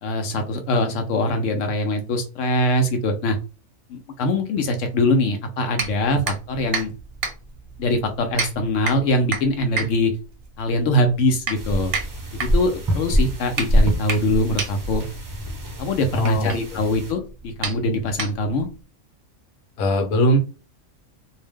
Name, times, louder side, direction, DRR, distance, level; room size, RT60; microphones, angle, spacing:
voice 1, 0.0-3.4 3.9-6.9 7.8-10.1 10.6-11.9 12.4-15.0 15.8-18.7, left 1 dB, 70° left, 6 dB, 0.9 m, -22 dB
sound 1, 5.7-18.8, right 5 dB, 60° right, 0.8 m, -32 dB
sound 2, 11.5-17.1, equal, 25° right, 0.4 m, -25 dB
voice 2, 16.1-16.8 19.8-20.4, equal, 85° left, 4 dB, 1.2 m, -20 dB
2.5 x 2.1 x 3.4 m, 0.32 s
omnidirectional pair, 1.4 m